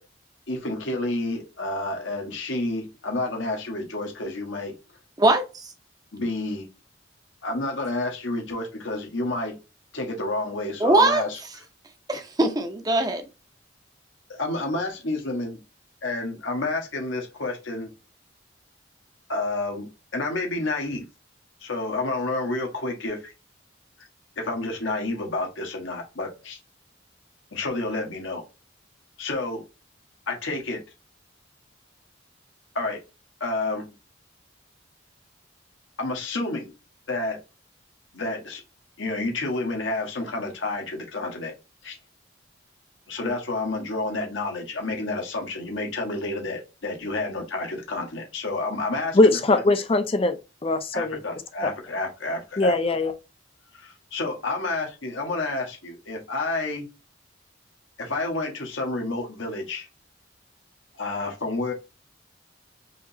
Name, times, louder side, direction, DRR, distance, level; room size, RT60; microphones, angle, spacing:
voice 1, 0.5-4.7 6.1-6.7 7.4-9.6 9.9-11.4 14.4-15.6 16.0-17.9 19.3-21.0 21.6-23.3 24.4-26.6 27.5-28.4 29.2-29.6 30.3-30.8 32.7-33.0 33.4-33.8 36.0-36.7 37.1-37.4 38.1-38.6 39.0-41.5 41.8-41.9 43.1-49.2 49.5-49.6 50.9-52.7 53.7-56.9 58.0-59.9 60.9-61.7, left 2 dB, 80° left, 1.3 m, -29 dB
voice 2, 5.2-5.7 10.8-11.2 12.1-13.2, right 2 dB, 20° right, 0.7 m, -21 dB
voice 3, 49.1-51.2 51.6-51.7 52.6-53.1, left 2 dB, 30° left, 0.5 m, -21 dB
4.9 x 2.9 x 2.7 m
head